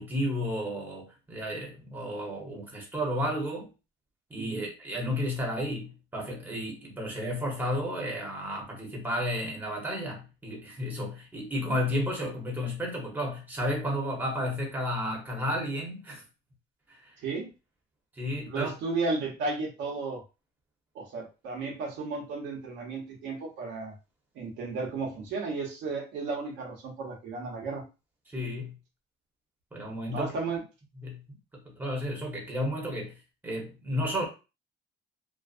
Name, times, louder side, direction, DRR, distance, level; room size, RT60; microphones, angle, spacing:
voice 1, 0.0-3.7 4.3-16.2 16.9-17.1 18.2-18.7 28.3-28.8 29.7-30.3 31.0-31.2 31.5-33.2 33.4-34.2, equal, 10° right, -2 dB, 1.0 m, -32 dB
voice 2, 4.4-4.7 17.2-17.5 18.5-20.2 20.9-23.9 24.3-27.8 30.1-30.6, right 3 dB, 75° right, 0 dB, 1.0 m, -34 dB
2.5 x 2.3 x 2.4 m, 0.29 s
cardioid pair, 125°, 19 cm